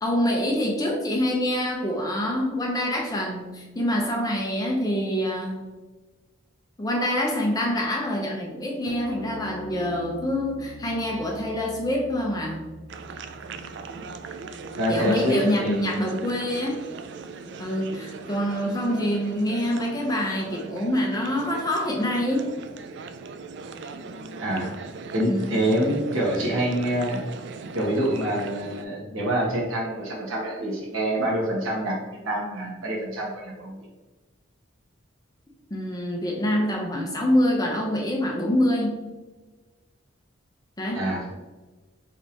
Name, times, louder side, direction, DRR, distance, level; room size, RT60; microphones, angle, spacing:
voice 1, 0.0-5.7 6.8-12.7 14.9-16.8 17.6-22.5 25.3-25.6 35.7-39.0 40.8-41.1, equal, 20° left, -1 dB, 0.7 m, -26 dB
sound 1, 8.9-15.5, left 3 dB, 70° left, 0.5 m, -43 dB
sound 2, 12.9-28.8, right 4 dB, 60° right, 0.3 m, -39 dB
voice 2, 14.7-15.8 24.4-24.7 25.1-27.2 27.7-32.0 32.2-33.8 40.9-41.2, right 1 dB, 80° right, -3 dB, 1.5 m, -26 dB
4.9 x 3.4 x 2.9 m, 1.2 s
head